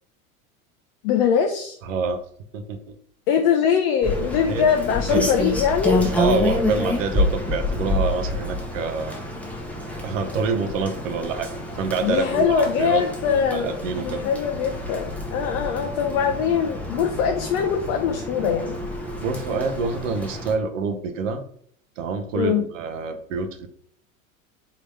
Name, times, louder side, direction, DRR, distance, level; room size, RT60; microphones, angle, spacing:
voice 1, 1.0-1.8 3.3-6.0 12.0-13.7 14.0-18.7 22.3-22.6, left 7 dB, 40° left, 5 dB, 0.4 m, -22 dB
voice 2, 1.8-2.2 2.5-2.9 4.5-4.7 5.1-5.3 6.2-9.2 10.0-14.2 19.2-21.4 22.0-23.7, right 4 dB, 65° right, 8 dB, 0.7 m, -27 dB
Rain, 4.0-20.5, left 1 dB, 5° left, 0.7 m, -28 dB
3.7 x 2.9 x 3.2 m, 0.62 s
figure-of-eight pair, 80°, 43 cm